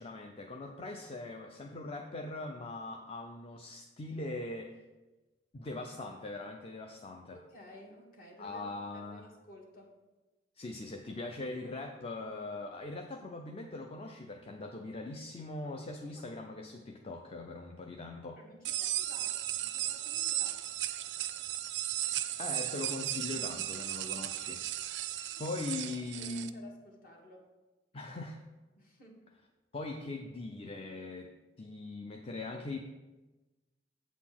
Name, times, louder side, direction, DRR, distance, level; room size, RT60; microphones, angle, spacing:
voice 1, 0.0-4.8 5.5-7.4 8.4-9.2 10.6-18.4 22.4-24.6 25.4-26.5 27.9-28.4 29.7-31.3 31.6-32.8, left 2 dB, 35° left, 3 dB, 0.5 m, -41 dB
voice 2, 7.3-9.9 18.3-20.7 25.9-27.5 28.7-29.2, left 1 dB, 55° left, 0 dB, 1.6 m, -54 dB
sound 1, 18.6-26.5, right 13 dB, 90° right, 0.4 m, -35 dB
8.1 x 4.2 x 5.9 m, 1.1 s
head